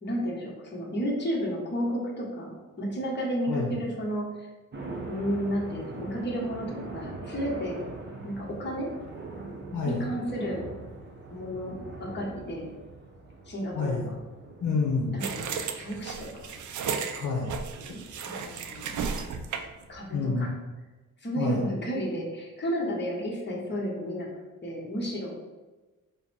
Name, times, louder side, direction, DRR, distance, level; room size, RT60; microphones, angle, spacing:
voice 1, 0.0-4.5 5.1-7.8 8.2-8.9 9.8-10.6 11.3-12.7 13.5-14.1 15.1-16.5 18.2-18.9 19.9-20.5 21.2-24.3 24.6-25.4, equal, 35° left, -3 dB, 1.1 m, -32 dB
sound 1, 4.7-20.4, right 3 dB, 35° right, 0.8 m, -43 dB
voice 2, 9.7-10.0 13.8-14.0 14.6-15.1 17.1-17.5 20.1-20.5 21.4-21.6, left 4 dB, 65° left, -2 dB, 0.8 m, -28 dB
sound 2, 15.2-19.8, right 6 dB, 65° right, 0.5 m, -34 dB
5.1 x 2.1 x 4.2 m, 1.2 s
wide cardioid pair, 130°, 32 cm